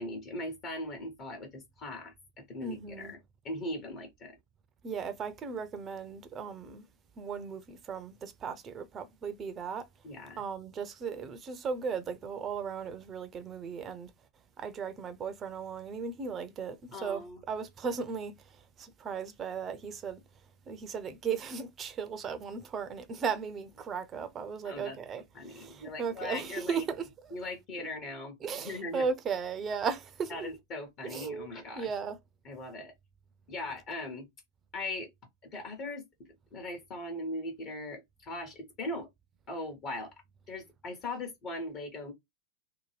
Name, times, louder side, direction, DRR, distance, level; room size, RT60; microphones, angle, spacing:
voice 1, 0.0-3.2 3.4-4.3 10.0-10.4 16.9-17.4 24.6-25.0 25.3-26.8 27.3-29.1 30.3-31.9 32.4-32.9 33.5-34.3 34.7-35.1 35.4-36.0 36.5-39.1 39.5-40.1 40.5-42.1, left 2 dB, 35° left, 0.9 m, -39 dB
voice 2, 2.6-3.1 4.8-6.9 7.2-9.9 10.4-14.1 14.6-20.2 20.7-27.3 27.8-27.9 28.4-30.5 31.0-31.5 31.8-32.2, right 6 dB, 25° right, 0.6 m, -36 dB
2.8 x 2.2 x 3.2 m
figure-of-eight pair, 90°, 0 cm